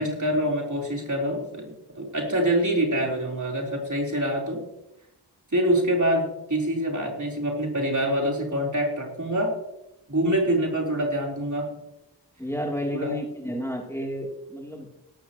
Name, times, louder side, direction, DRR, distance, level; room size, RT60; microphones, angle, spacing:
voice 1, 0.0-4.6 5.5-9.6 10.1-11.7 12.9-13.1, right 1 dB, 45° right, -1 dB, 4.0 m, -25 dB
voice 2, 12.4-14.9, equal, 5° left, -1 dB, 3.2 m, -31 dB
17.5 x 12.5 x 3.1 m, 0.90 s
cardioid pair, 40°, 41 cm